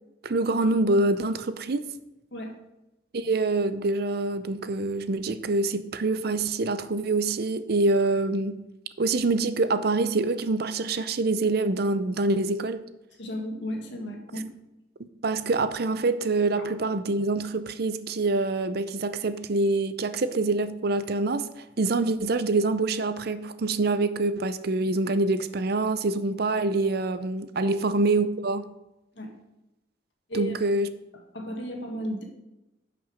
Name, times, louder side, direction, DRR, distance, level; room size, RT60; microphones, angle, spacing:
voice 1, 0.2-1.9 3.1-8.6 9.0-12.8 15.0-28.7 30.3-30.9, right 2 dB, 55° right, 0.6 m, -25 dB
voice 2, 13.2-14.5 16.6-16.7 27.6-27.7 29.2-29.3 30.3-30.6 31.3-32.2, equal, 65° left, 1.9 m, -34 dB
11.0 x 6.0 x 5.1 m
head